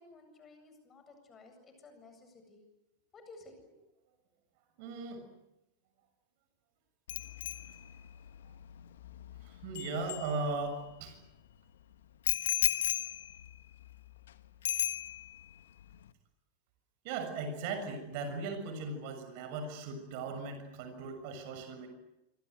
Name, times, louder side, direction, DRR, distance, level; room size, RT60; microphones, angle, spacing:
voice 1, 0.0-2.6 3.1-3.8, left 3 dB, 20° left, 7 dB, 8.0 m, -55 dB
voice 2, 4.8-5.2 9.4-11.2 17.0-21.9, right 3 dB, 45° right, 7 dB, 6.8 m, -38 dB
Bicycle bell, 7.1-10.9 12.3-14.3 14.6-15.5 15.8-16.1, left 11 dB, 60° left, 1.4 m, -35 dB
26.5 x 25.5 x 8.1 m, 0.93 s
figure-of-eight pair, 90°, 0 cm